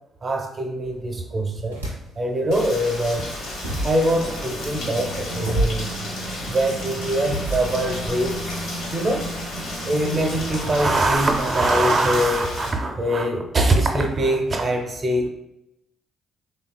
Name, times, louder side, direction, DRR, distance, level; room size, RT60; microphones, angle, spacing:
voice 1, 0.2-1.9 2.2-3.2 3.8-5.9 6.5-9.3 9.9-15.3, right 1 dB, 40° right, 2 dB, 0.5 m, -23 dB
sound 1, 0.8-2.4 2.8-8.1, right 1 dB, 90° right, 0.3 m, -32 dB
Rain, 2.5-12.7, left 1 dB, 65° left, 0.7 m, -33 dB
sound 2, 4.1-10.9, right 1 dB, 25° left, 0.4 m, -35 dB
2.8 x 2.2 x 2.2 m, 0.83 s
figure-of-eight pair, 40°, 0 cm